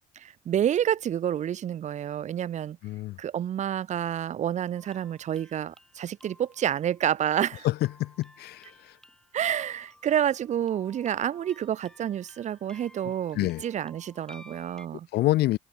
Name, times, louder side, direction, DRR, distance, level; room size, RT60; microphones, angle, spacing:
voice 1, 0.2-2.8 3.2-7.7 9.3-15.1, right 10 dB, 45° right, 0.6 m, -29 dB
voice 2, 2.8-3.2 7.6-8.7 13.3-13.6 15.1-15.6, left 17 dB, 75° left, 0.8 m, -26 dB
sound 1, 4.7-14.9, left 1 dB, 5° left, 7.8 m, -55 dB
cardioid pair, 110°, 17 cm